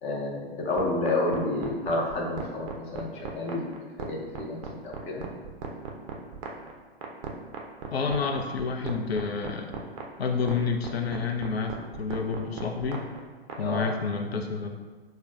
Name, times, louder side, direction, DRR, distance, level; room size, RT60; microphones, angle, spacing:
voice 1, 0.0-3.7 4.0-5.2 13.6-13.8, left 2 dB, 20° left, -1 dB, 0.6 m, -30 dB
sound 1, 0.8-13.6, right 7 dB, 35° right, 0.5 m, -37 dB
voice 2, 7.9-9.7 10.2-13.1 13.6-14.7, left 5 dB, 80° left, 4 dB, 0.5 m, -29 dB
6.0 x 2.1 x 2.5 m, 1.4 s
figure-of-eight pair, 110°, 31 cm